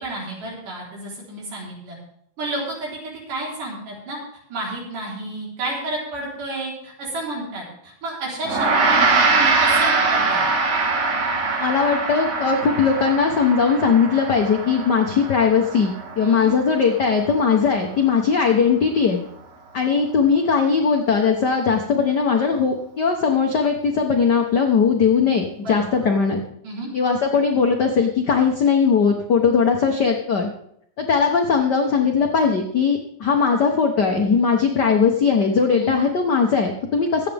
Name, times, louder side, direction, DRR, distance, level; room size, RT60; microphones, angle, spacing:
voice 1, 0.0-2.0 2.4-4.2 4.5-10.5 16.2-16.5 25.6-25.9 26.6-26.9 35.7-36.0, right 2 dB, 80° right, -3 dB, 5.6 m, -31 dB
Gong, 8.5-18.0, right 4 dB, 55° right, 2.9 m, -23 dB
voice 2, 11.6-19.2 19.7-26.4 26.9-30.5 31.0-37.3, left 5 dB, 70° left, 2 dB, 1.0 m, -19 dB
23.5 x 8.3 x 3.5 m, 0.71 s
omnidirectional pair, 3.7 m